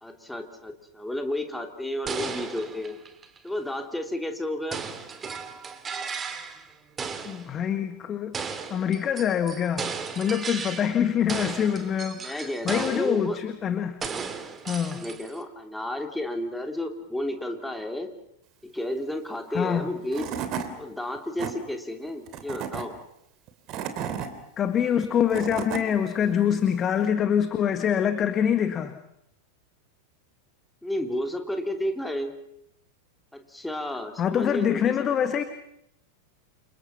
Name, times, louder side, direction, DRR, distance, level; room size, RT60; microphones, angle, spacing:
voice 1, 0.0-3.0 3.4-4.8 12.1-13.4 14.9-18.1 18.6-20.3 20.8-22.9 30.8-32.4 33.3-34.9, left 1 dB, 5° left, 4 dB, 3.0 m, -32 dB
sound 1, 2.1-3.5 4.7-6.7 7.0-7.5 8.3-11.0 11.3-13.3 14.0-15.4, right 5 dB, 20° right, 2.4 m, -35 dB
voice 2, 7.2-8.4 8.7-14.0 14.7-15.1 19.5-19.9 24.6-29.0 34.2-35.4, left 8 dB, 25° left, 9 dB, 1.5 m, -25 dB
Tools / Wood, 19.8-19.9 20.1-20.7 21.2-21.5 22.3-22.8 23.5-24.3 25.0-25.8, right 8 dB, 40° right, 3.0 m, -32 dB
29.5 x 26.5 x 5.8 m, 0.79 s
figure-of-eight pair, 90°, 0 cm